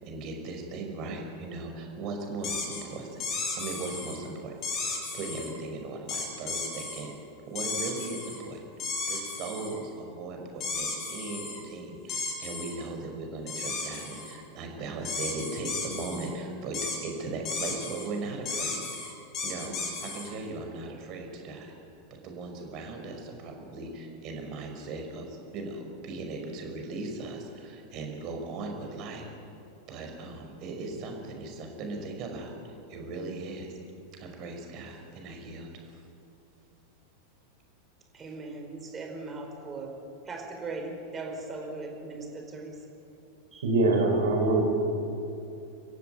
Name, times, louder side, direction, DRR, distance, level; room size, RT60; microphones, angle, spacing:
voice 1, 0.0-7.1 7.5-8.7 9.1-18.8 19.4-21.7 22.2-29.2 29.9-33.7 34.1-36.0, right 3 dB, 40° right, 3 dB, 5.5 m, -38 dB
sound 1, 2.4-2.8 3.2-4.2 4.6-5.5 6.1-7.0 7.6-8.4 8.8-9.8 10.6-11.6 12.1-12.7 13.5-14.4 15.0-16.3 16.7-17.0 17.5-18.1 18.5-20.3, left 3 dB, 35° left, 6.7 m, -34 dB
voice 2, 38.1-40.0 40.2-42.8 43.5-43.7, right 3 dB, 20° right, 3 dB, 4.8 m, -39 dB
voice 3, 43.6-44.6, right 2 dB, 65° right, 1 dB, 5.0 m, -23 dB
29.0 x 15.0 x 9.6 m, 2.7 s
figure-of-eight pair, 90°, 0 cm